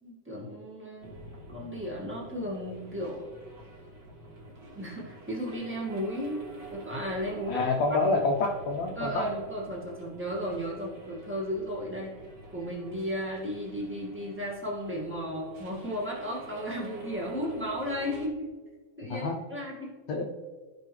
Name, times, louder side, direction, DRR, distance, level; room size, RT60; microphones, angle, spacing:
voice 1, 0.0-1.1 1.5-3.2 4.7-6.4 6.7-7.6 9.0-12.1 12.5-18.5 19.0-19.9, equal, 15° right, -4 dB, 0.4 m, -34 dB
sound 1, 1.0-18.3, right 2 dB, 35° right, 1.9 m, -47 dB
voice 2, 7.5-9.3 19.1-19.4 20.1-20.3, left 3 dB, 80° left, 1 dB, 1.5 m, -27 dB
15.5 x 5.5 x 3.2 m, 1.4 s
omnidirectional pair, 3.8 m